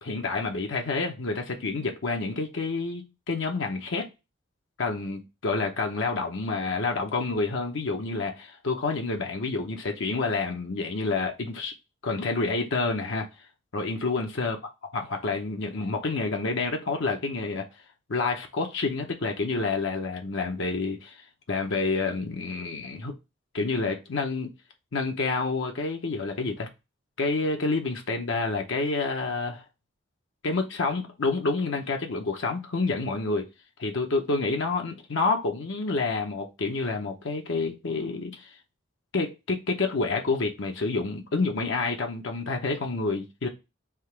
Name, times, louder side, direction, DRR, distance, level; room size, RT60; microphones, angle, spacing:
voice 1, 0.0-4.1 4.8-11.7 12.0-13.3 13.7-14.6 14.9-17.6 18.1-21.2 21.5-23.1 23.5-24.5 24.9-26.7 27.2-29.6 30.4-33.5 33.8-38.5 39.1-43.5, left 3 dB, 65° left, 0.7 m, -28 dB
3.6 x 2.8 x 4.5 m
head